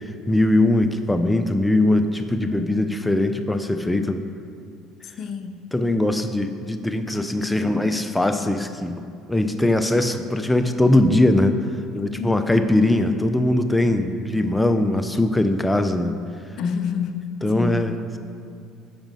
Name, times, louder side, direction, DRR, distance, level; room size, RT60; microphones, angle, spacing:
voice 1, 0.0-4.2 5.7-11.6 11.9-16.2 17.4-18.2, left 1 dB, 10° left, 8 dB, 0.6 m, -21 dB
voice 2, 2.4-3.0 5.2-5.6 12.2-12.7 16.6-17.9, left 6 dB, 55° left, 9 dB, 0.6 m, -29 dB
10.5 x 5.2 x 6.3 m, 2.4 s
supercardioid pair, 80°, 0 cm